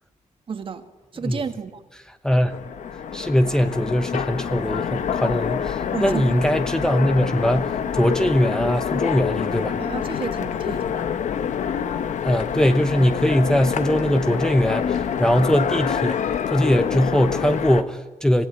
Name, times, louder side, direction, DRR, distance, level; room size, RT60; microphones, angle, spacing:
voice 1, 0.5-0.9 1.1-1.8 5.9-6.4 9.8-11.1, right 6 dB, 45° right, 1.7 m, -31 dB
voice 2, 2.2-2.6 3.1-9.8 12.3-16.2 16.5-18.5, equal, 5° left, 0.9 m, -21 dB
Train, 2.4-17.8, left 8 dB, 70° left, 1.2 m, -26 dB
25.5 x 17.0 x 9.4 m
wide cardioid pair, 160°, 13 cm